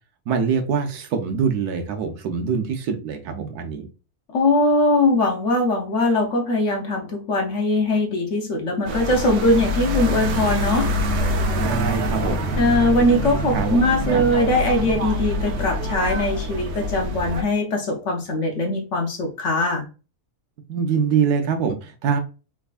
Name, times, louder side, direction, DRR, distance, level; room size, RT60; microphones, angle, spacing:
voice 1, 0.3-3.9 11.6-12.5 13.5-13.8 14.1-14.2 20.7-22.2, right 6 dB, 75° right, 5 dB, 1.2 m, -24 dB
voice 2, 4.3-10.9 12.6-19.9, left 1 dB, 55° left, 2 dB, 1.0 m, -21 dB
sound 1, 8.9-17.4, equal, 60° right, 0.8 m, -25 dB
3.6 x 3.1 x 2.4 m, 0.32 s
omnidirectional pair, 1.7 m